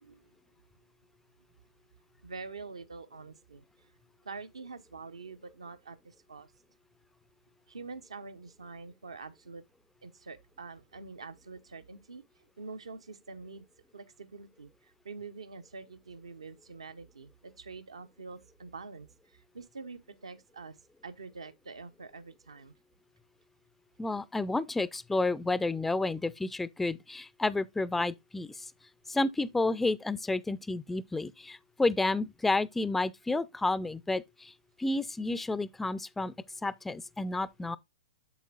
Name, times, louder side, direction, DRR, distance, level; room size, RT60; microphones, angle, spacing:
voice 1, 2.2-3.9 4.2-6.5 7.7-9.6 10.0-12.2 12.6-13.7 13.9-20.8 21.0-22.7, right 4 dB, 75° right, 0.9 m, -46 dB
voice 2, 24.0-28.7 29.1-34.5 34.8-36.3 36.6-37.8, left 2 dB, 5° left, 0.4 m, -30 dB
8.2 x 7.3 x 2.3 m
figure-of-eight pair, 110°, 3 cm